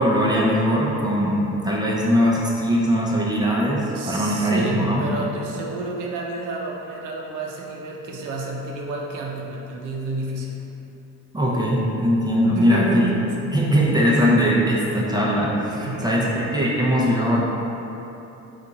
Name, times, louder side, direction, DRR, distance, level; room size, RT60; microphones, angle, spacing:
voice 1, 0.0-5.0 11.3-12.9 13.5-17.5, equal, 15° right, -5 dB, 0.6 m, -20 dB
voice 2, 3.9-10.6 12.6-13.7 15.8-16.3, right 2 dB, 80° right, -1 dB, 0.7 m, -30 dB
4.3 x 2.5 x 3.9 m, 3.0 s
cardioid pair, 90°, 30 cm